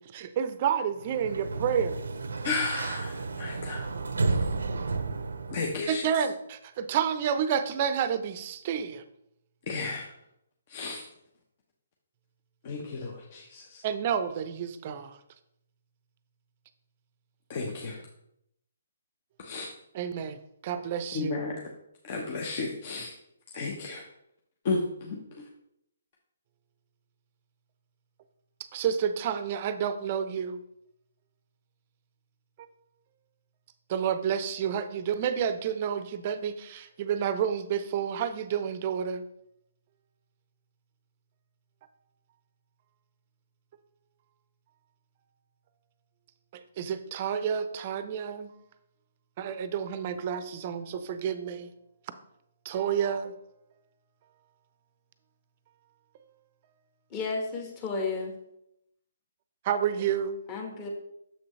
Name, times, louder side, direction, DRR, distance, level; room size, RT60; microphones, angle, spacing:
voice 1, 0.0-2.0 5.9-9.0 13.8-15.2 19.9-20.4 20.6-21.4 28.7-30.6 33.9-39.2 46.8-48.5 49.4-51.7 52.6-53.3 59.6-60.4, right 8 dB, 35° right, 11 dB, 0.5 m, -30 dB
Sliding door, 1.0-5.8, right 3 dB, 85° right, 0.6 m, -32 dB
voice 2, 2.4-3.1 3.4-3.8 5.5-6.0 9.7-10.0 10.7-11.0 12.6-13.6 17.5-17.9 19.5-19.6 21.1-21.5 22.1-23.1 23.5-24.0 24.6-24.8 25.1-25.2, left 3 dB, 40° left, 0 dB, 0.9 m, -32 dB
voice 3, 57.1-58.3 60.5-60.9, left 4 dB, 25° left, 1 dB, 1.3 m, -32 dB
7.2 x 6.0 x 3.2 m, 0.79 s
hypercardioid pair, 150°, 0 cm